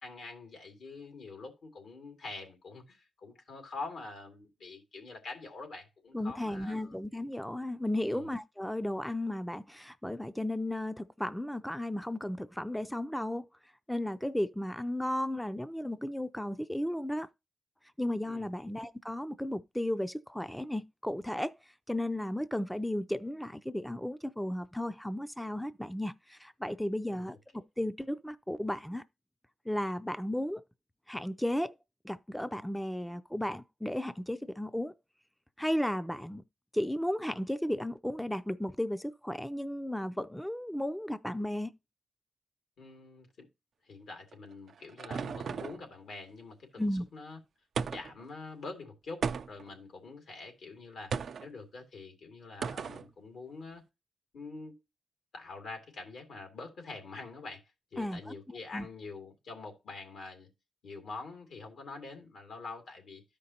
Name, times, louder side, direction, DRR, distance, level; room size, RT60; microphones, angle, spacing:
voice 1, 0.0-7.0 8.1-8.3 18.3-18.4 27.1-27.3 27.5-27.6 42.8-43.5 43.8-47.4 47.9-51.1 51.4-53.8 54.3-54.7 55.3-57.6 57.9-60.5 60.8-63.2, left 3 dB, 85° left, 2.3 m, -45 dB
voice 2, 6.1-13.5 13.9-17.3 18.0-27.4 27.8-29.0 29.7-30.6 31.1-31.8 32.0-34.9 35.6-36.4 36.7-41.7 46.8-47.0 58.0-58.3 58.7-58.9, left 1 dB, 5° left, 0.4 m, -34 dB
sound 1, 44.3-45.9 47.8-48.2 49.2-49.8 51.1-51.5 52.6-53.1, right 6 dB, 75° right, 0.4 m, -35 dB
12.5 x 5.2 x 2.8 m
cardioid pair, 65°, 0 cm